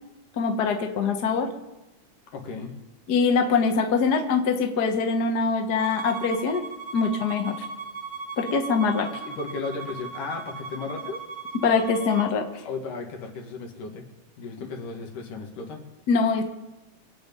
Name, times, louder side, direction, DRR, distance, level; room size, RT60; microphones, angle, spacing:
voice 1, 0.4-1.5 3.1-6.6 6.9-7.6 8.4-9.1 11.6-12.4 16.1-16.4, left 5 dB, 45° left, 5 dB, 1.3 m, -23 dB
voice 2, 2.3-2.7 9.2-11.2 12.7-14.0 14.4-15.8, left 4 dB, 75° left, 2 dB, 3.6 m, -35 dB
Bowed string instrument, 5.8-12.3, right 4 dB, 75° right, 0.7 m, -37 dB
24.5 x 8.7 x 5.4 m, 1.1 s
omnidirectional pair, 3.7 m